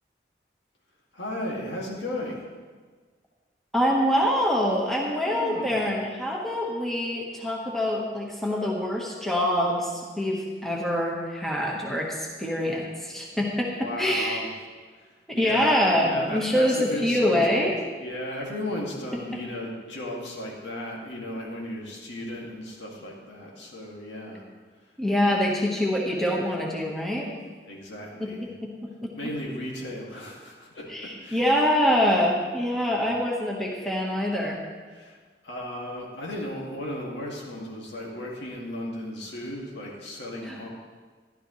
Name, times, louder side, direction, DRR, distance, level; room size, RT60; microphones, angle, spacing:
voice 1, 1.1-2.5 5.2-5.9 13.7-14.5 15.0-17.7 18.0-24.4 27.7-28.5 29.1-31.4 32.8-33.2 34.9-35.2 35.4-40.7, left 1 dB, 85° left, -3 dB, 2.4 m, -35 dB
voice 2, 3.7-13.7 14.0-14.4 15.4-17.7 25.0-27.2 28.2-28.3 28.6-28.7 29.0-29.1 30.9-34.6 40.4-40.6, left 1 dB, ahead, -3 dB, 1.3 m, -25 dB
13.0 x 11.5 x 3.2 m, 1.5 s
head